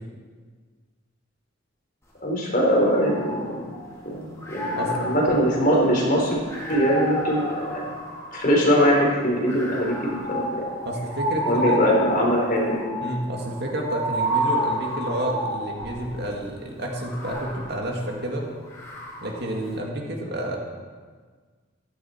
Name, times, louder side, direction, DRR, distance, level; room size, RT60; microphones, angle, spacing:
voice 1, 2.2-3.6 4.0-6.4 6.7-8.0 8.3-10.6 11.4-12.8, equal, 40° left, -3 dB, 4.1 m, -22 dB
sound 1, 2.8-4.0 4.4-8.8 9.5-16.1 16.9-19.5, equal, 15° left, 2.5 m, -30 dB
voice 2, 4.7-5.1 10.9-11.8 13.0-18.5 19.2-20.6, right 1 dB, 50° right, 0 dB, 2.3 m, -30 dB
15.0 x 13.0 x 4.5 m, 1.5 s
head